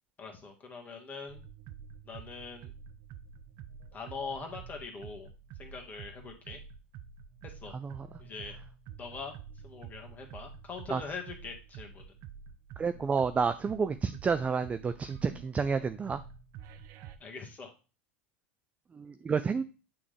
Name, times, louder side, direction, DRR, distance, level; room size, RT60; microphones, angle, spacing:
voice 1, 0.2-1.4 2.1-2.7 3.9-5.3 5.6-6.6 7.4-7.7 8.2-8.6 9.0-9.3 9.6-12.0 17.2-17.7, left 4 dB, 25° left, 2 dB, 1.6 m, -42 dB
sound 1, 1.3-17.2, right 7 dB, 50° right, 0.7 m, -49 dB
voice 2, 7.7-8.1 10.9-11.0 12.8-16.2 18.9-19.6, right 5 dB, 20° right, 12 dB, 0.4 m, -30 dB
8.5 x 3.6 x 3.3 m, 0.33 s
hypercardioid pair, 105°, 7 cm